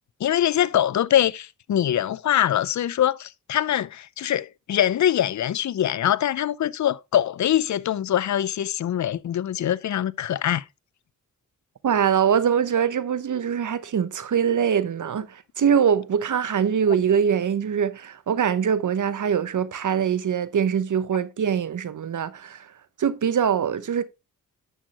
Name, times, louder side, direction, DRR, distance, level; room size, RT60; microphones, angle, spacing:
voice 1, 0.2-10.6, left 11 dB, 55° left, 0.6 m, -23 dB
voice 2, 11.8-22.7 23.0-24.0, right 8 dB, 60° right, 0.9 m, -23 dB
10.0 x 6.4 x 2.9 m
cardioid pair, 50°, 34 cm